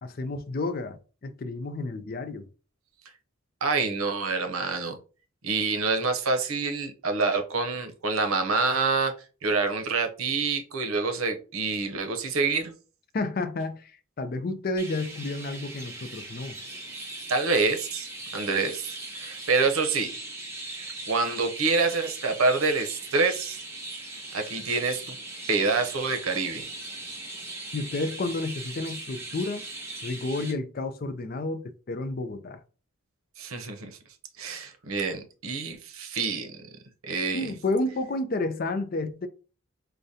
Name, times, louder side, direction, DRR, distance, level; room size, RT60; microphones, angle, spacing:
voice 1, 0.0-2.4 13.1-16.6 27.7-29.6 30.0-32.6 37.3-39.3, left 2 dB, 45° left, 0.4 m, -31 dB
voice 2, 3.6-5.0 5.4-9.1 9.4-12.7 17.3-18.1 18.3-20.1 20.8-23.6 24.3-25.2 25.5-26.7 33.4-33.9 34.4-36.6 37.1-37.5, right 4 dB, 85° right, 0.7 m, -27 dB
Chirp tweet, 14.8-30.5, right 2 dB, 10° right, 0.9 m, -39 dB
4.8 x 2.2 x 2.7 m
head